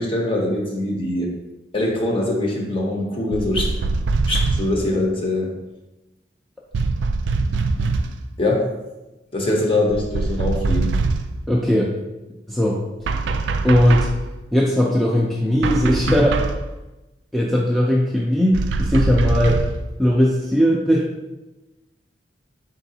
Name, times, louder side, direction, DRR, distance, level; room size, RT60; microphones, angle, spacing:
voice 1, 0.0-1.3 1.7-3.7 4.3-5.5 8.4-8.7 9.3-10.9, left 1 dB, 30° left, 0 dB, 0.8 m, -22 dB
sound 1, 3.3-4.8 6.7-8.2 9.9-11.4 13.0-14.3 15.6-16.7 18.5-19.8, right 3 dB, 90° right, 0.3 m, -23 dB
voice 2, 11.5-11.9 12.5-12.8 13.6-14.1 14.5-16.4 17.3-19.6 20.0-21.1, equal, ahead, -4 dB, 0.4 m, -18 dB
4.4 x 3.9 x 2.7 m, 1.0 s
head